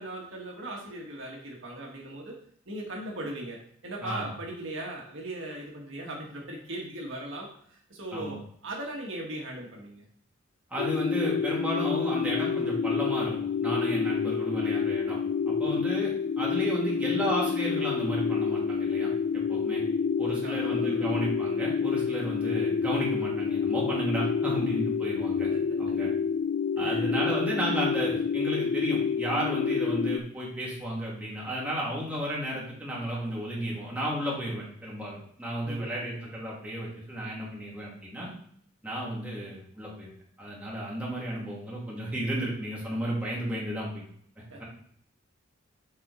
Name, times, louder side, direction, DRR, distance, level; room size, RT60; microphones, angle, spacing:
voice 1, 0.0-2.4 2.7-3.6 3.8-10.0 15.6-15.8 20.4-21.2 25.5-25.6 26.8-27.1 35.6-36.2 44.5-44.6, right 1 dB, 65° right, -2 dB, 1.6 m, -39 dB
voice 2, 4.0-4.3 8.1-8.4 10.7-13.3 13.6-15.2 15.5-19.1 19.5-19.8 20.2-25.5 25.8-26.1 26.8-38.3 38.8-40.1 40.4-44.0 44.6-44.7, equal, 5° right, -6 dB, 2.6 m, -33 dB
sound 1, 10.8-30.2, left 6 dB, 50° left, 0.3 m, -28 dB
7.5 x 4.4 x 4.3 m, 0.63 s
head